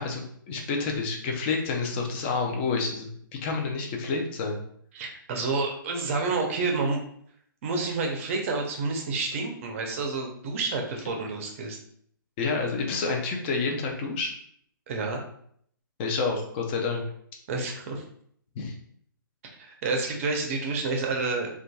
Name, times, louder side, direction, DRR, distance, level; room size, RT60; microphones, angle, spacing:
voice 1, 0.0-4.6 12.4-14.3 16.0-17.0 18.6-18.7, left 4 dB, 30° left, 1 dB, 0.5 m, -29 dB
voice 2, 4.9-7.0 7.6-11.8 14.9-15.2 17.5-18.0 19.6-21.5, right 3 dB, 40° right, 2 dB, 0.6 m, -29 dB
2.5 x 2.3 x 2.3 m, 0.66 s
hypercardioid pair, 140°, 12 cm